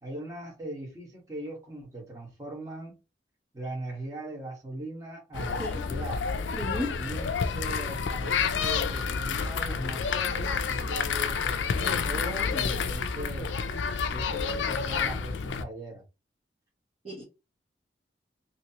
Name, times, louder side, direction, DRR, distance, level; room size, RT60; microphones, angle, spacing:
voice 1, 0.0-2.9 3.5-6.2 7.0-13.5 14.1-16.0, right 1 dB, 20° right, 1.4 m, -39 dB
sound 1, 5.3-15.6, left 5 dB, 90° left, 0.4 m, -29 dB
voice 2, 6.5-7.0 17.0-17.2, equal, 35° right, 1.1 m, -34 dB
3.0 x 2.8 x 2.8 m
head